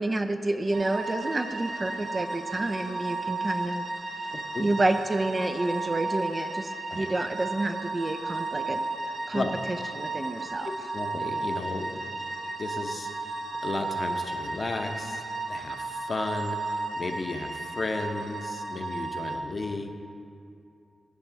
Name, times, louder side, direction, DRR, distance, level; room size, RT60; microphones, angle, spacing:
voice 1, 0.0-3.8 4.6-8.8 9.3-9.5 9.9-10.7, right 2 dB, 30° right, 7 dB, 0.4 m, -29 dB
sound 1, 0.7-19.4, right 3 dB, 55° right, 0.9 m, -34 dB
voice 2, 4.3-4.7 6.9-7.0 9.3-9.5 10.6-12.1 12.6-13.4 13.6-19.9, left 3 dB, 45° left, 5 dB, 0.7 m, -34 dB
14.0 x 5.4 x 4.6 m, 2.6 s
cardioid pair, 90°, 0 cm